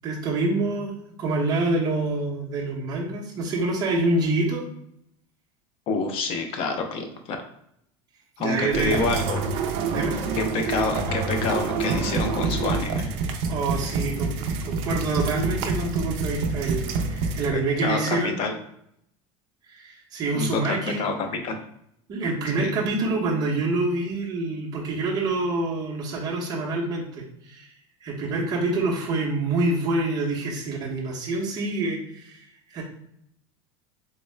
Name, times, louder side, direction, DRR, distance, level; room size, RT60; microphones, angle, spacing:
voice 1, 0.0-4.6 8.4-9.1 9.9-10.2 13.5-18.4 19.7-21.1 22.1-27.7 28.0-32.8, right 2 dB, 30° right, -5 dB, 0.7 m, -26 dB
voice 2, 5.9-7.4 8.4-9.4 10.3-13.1 17.5-18.5 20.3-21.6 22.6-22.7, left 3 dB, 45° left, 5 dB, 0.5 m, -27 dB
sound 1, 8.7-17.5, right 4 dB, 60° right, 0.4 m, -27 dB
3.6 x 2.1 x 3.2 m, 0.74 s
cardioid pair, 155°, 14 cm